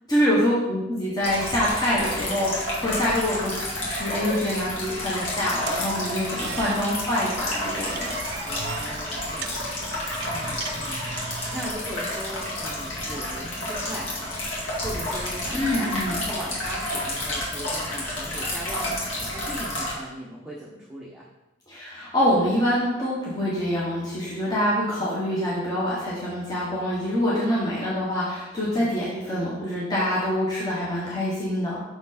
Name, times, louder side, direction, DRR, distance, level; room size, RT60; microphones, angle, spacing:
voice 1, 0.1-3.5 3.8-8.1 15.5-16.2 21.7-31.8, equal, 20° left, -7 dB, 1.2 m, -25 dB
sound 1, 1.2-19.9, left 1 dB, 85° left, 1.9 m, -30 dB
sound 2, 5.7-11.7, right 6 dB, 60° right, 0.5 m, -38 dB
voice 2, 8.4-9.7 10.3-15.9 16.2-21.3 24.9-25.1 28.7-29.0, equal, 5° right, -6 dB, 0.8 m, -39 dB
6.2 x 4.5 x 4.2 m, 1.0 s
head